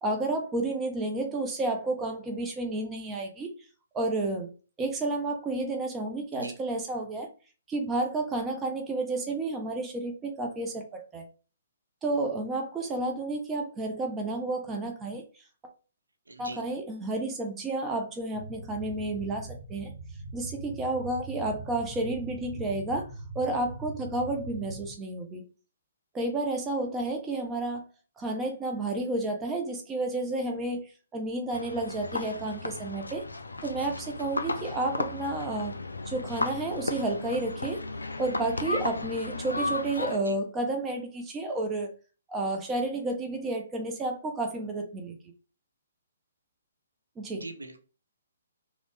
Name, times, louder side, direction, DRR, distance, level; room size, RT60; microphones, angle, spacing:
voice 1, 0.0-3.5 3.9-4.5 4.8-7.3 7.7-11.3 12.0-15.2 16.4-19.9 20.3-23.0 23.3-25.4 26.1-27.9 28.2-30.8 31.1-33.2 33.6-35.7 36.1-37.8 38.2-41.9 42.3-45.2 47.2-47.4, right 2 dB, 15° right, 3 dB, 0.6 m, -31 dB
voice 2, 16.3-16.6 40.3-40.4 47.4-47.8, right 2 dB, 90° right, 6 dB, 0.6 m, -41 dB
sound 1, 18.3-24.9, right 2 dB, 50° left, 1.5 m, -41 dB
sound 2, 31.5-40.2, left 2 dB, 85° left, 0.3 m, -34 dB
3.0 x 2.0 x 3.1 m, 0.36 s
figure-of-eight pair, 135°, 0 cm